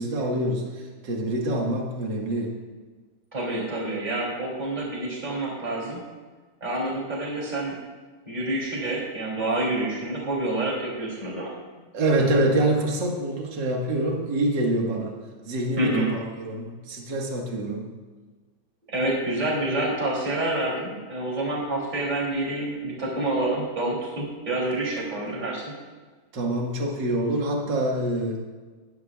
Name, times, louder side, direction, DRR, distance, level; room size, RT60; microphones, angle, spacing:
voice 1, 0.0-2.5 11.9-15.2 15.4-17.9 26.3-28.4, right 1 dB, 40° right, 0 dB, 1.9 m, -26 dB
voice 2, 3.3-6.0 6.6-7.8 8.2-11.5 15.8-16.1 18.9-25.6, right 2 dB, 15° right, -3 dB, 2.9 m, -28 dB
18.5 x 11.0 x 2.5 m, 1.4 s
omnidirectional pair, 3.7 m